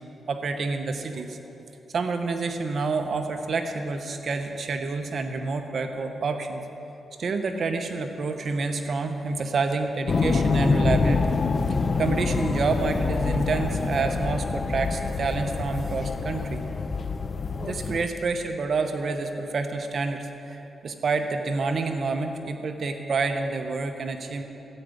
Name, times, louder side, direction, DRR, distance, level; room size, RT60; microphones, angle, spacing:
voice 1, 0.3-1.4 1.9-6.6 7.2-11.4 12.0-16.6 17.6-24.4, right 4 dB, 65° right, 6 dB, 0.9 m, -28 dB
sound 1, 10.1-18.1, left 4 dB, 50° left, 0.5 m, -26 dB
14.0 x 8.1 x 5.1 m, 3.0 s
cardioid pair, 70°, 0 cm